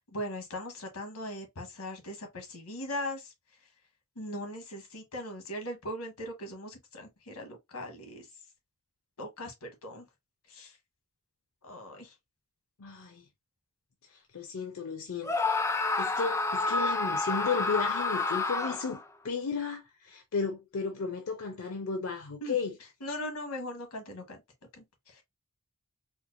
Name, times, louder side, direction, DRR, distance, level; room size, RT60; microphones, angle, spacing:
voice 1, 0.1-3.3 4.2-8.3 9.2-10.0 10.5-10.8 11.6-12.1 22.4-22.6 23.0-24.4 24.7-25.2, left 1 dB, 90° left, 1.2 m, -39 dB
voice 2, 12.8-13.2 14.1-15.3 16.0-22.7, left 5 dB, 70° left, 0.5 m, -34 dB
Screaming, 15.2-19.0, left 3 dB, 10° left, 0.3 m, -29 dB
4.4 x 2.1 x 2.5 m
head